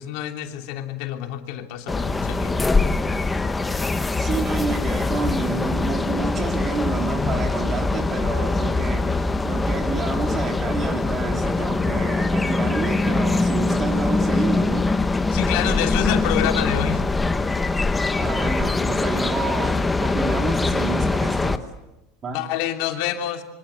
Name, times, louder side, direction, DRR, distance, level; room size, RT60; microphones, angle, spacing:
voice 1, 0.0-2.7 15.3-17.0 22.3-23.4, left 11 dB, 65° left, 3.0 m, -27 dB
sound 1, 1.9-21.6, left 3 dB, 10° left, 1.2 m, -23 dB
voice 2, 4.2-9.1 9.4-14.9 18.2-21.7 22.2-22.4, right 4 dB, 25° right, 3.8 m, -29 dB
26.5 x 24.5 x 8.3 m
supercardioid pair, 145°, 0 cm